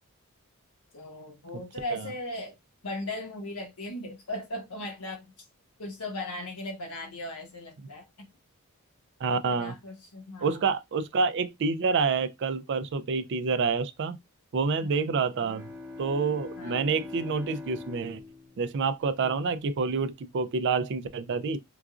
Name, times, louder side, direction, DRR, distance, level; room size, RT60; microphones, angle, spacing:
voice 1, 0.9-2.6 2.8-5.2 5.8-8.3 9.5-10.6 14.8-15.0 16.6-16.8, left 1 dB, 90° left, 1.3 m, -38 dB
voice 2, 9.2-9.7 10.4-14.2 14.5-15.7 16.0-18.2 18.6-21.6, right 4 dB, 55° right, 0.4 m, -28 dB
Bowed string instrument, 15.2-19.8, left 3 dB, 10° right, 0.8 m, -43 dB
3.8 x 2.4 x 2.4 m
head